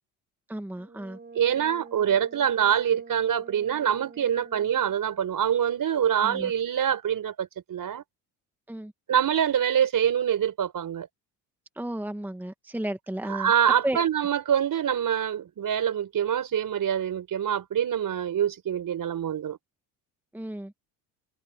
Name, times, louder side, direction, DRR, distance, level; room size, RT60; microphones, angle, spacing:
voice 1, 0.5-1.2 6.2-6.5 8.7-8.9 11.8-13.5 13.8-14.0 20.3-20.8, right 1 dB, 5° right, 1.5 m, -33 dB
Brass instrument, 0.7-5.1, right 4 dB, 25° right, 7.3 m, -47 dB
voice 2, 1.3-8.0 9.1-11.1 13.3-19.6, right 9 dB, 50° right, 4.9 m, -25 dB
cardioid pair, 90°, 41 cm